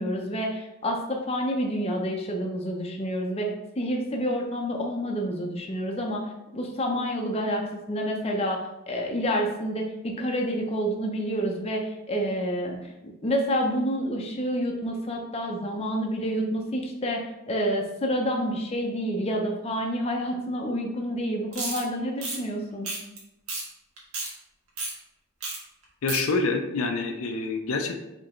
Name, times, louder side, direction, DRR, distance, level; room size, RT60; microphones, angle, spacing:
voice 1, 0.0-3.5 3.8-6.3 6.5-7.6 7.9-8.6 8.9-12.8 13.2-17.2 17.5-22.9, equal, 30° left, 1 dB, 0.5 m, -28 dB
sound 1, 21.5-21.8 22.2-22.4 22.8-23.2 23.5-23.6 24.0-24.3 24.8-24.9 25.4-25.6 25.8-26.2, right 3 dB, 80° right, 1.4 m, -31 dB
voice 2, 26.0-28.0, left 3 dB, 75° left, 5 dB, 0.5 m, -27 dB
4.7 x 3.4 x 3.0 m, 0.92 s
head